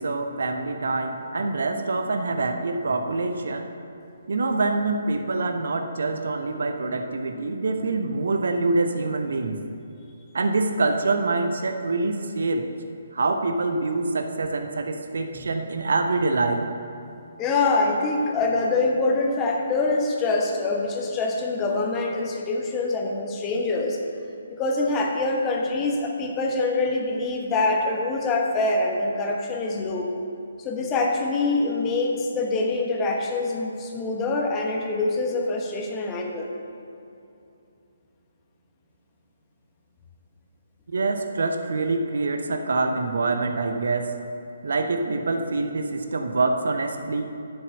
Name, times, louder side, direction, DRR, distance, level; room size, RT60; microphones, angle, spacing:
voice 1, 0.0-3.7 4.3-9.6 10.3-12.7 13.1-16.6 40.9-44.1 44.6-47.3, right 3 dB, 60° right, 6 dB, 0.8 m, -25 dB
voice 2, 17.4-24.0 24.5-30.1 30.6-36.5, left 3 dB, 20° left, 0 dB, 1.1 m, -25 dB
7.5 x 7.1 x 6.7 m, 2.7 s
figure-of-eight pair, 135°, 0 cm